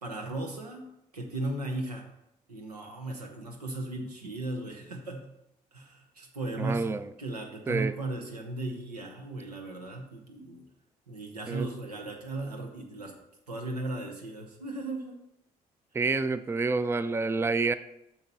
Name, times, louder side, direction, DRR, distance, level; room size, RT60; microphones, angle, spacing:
voice 1, 0.0-0.8 1.1-2.0 2.5-5.2 5.7-10.6 11.1-13.1 13.5-15.2, right 2 dB, 90° right, 2 dB, 0.8 m, -36 dB
voice 2, 6.6-7.1 7.7-7.9 11.5-11.7 15.9-17.7, right 3 dB, 15° right, 14 dB, 0.4 m, -28 dB
7.9 x 5.9 x 4.1 m, 0.83 s
figure-of-eight pair, 45°, 20 cm